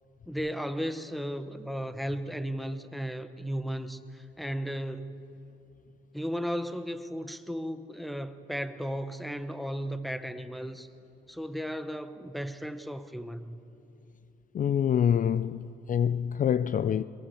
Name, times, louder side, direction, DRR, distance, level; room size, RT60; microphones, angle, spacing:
voice 1, 0.3-5.3 6.1-10.9 11.3-13.6, equal, ahead, 1.1 m, -35 dB
voice 2, 14.5-17.0, left 8 dB, 45° left, 0.4 m, -26 dB
23.0 x 19.0 x 7.0 m
cardioid pair, 90°, 20 cm